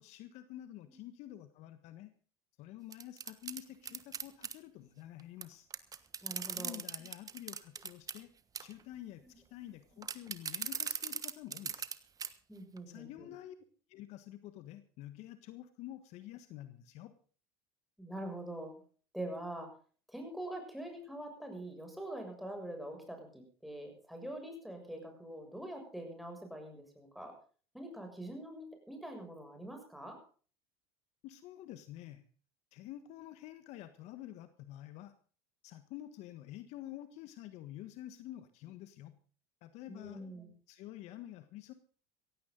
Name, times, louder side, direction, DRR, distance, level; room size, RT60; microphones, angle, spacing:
voice 1, 0.0-2.1 2.6-5.7 6.5-8.3 8.6-11.8 12.9-13.5 13.9-17.1 31.2-32.2 32.7-35.1 35.6-39.2 39.6-40.2 40.7-41.7, left 13 dB, 60° left, 11 dB, 1.5 m, -49 dB
sound 1, 2.9-4.5 5.4-5.5 5.7-8.2 8.5-8.8 10.0-11.9 12.2-12.3 12.8-12.9, right 6 dB, 30° right, 1.3 m, -39 dB
voice 2, 6.2-6.8 9.2-9.4 12.5-13.3 18.0-18.8 19.1-19.7 20.1-27.4 27.7-30.2 39.9-40.5, right 1 dB, ahead, 3 dB, 6.9 m, -44 dB
16.5 x 16.0 x 3.9 m, 0.40 s
hypercardioid pair, 90°, 13 cm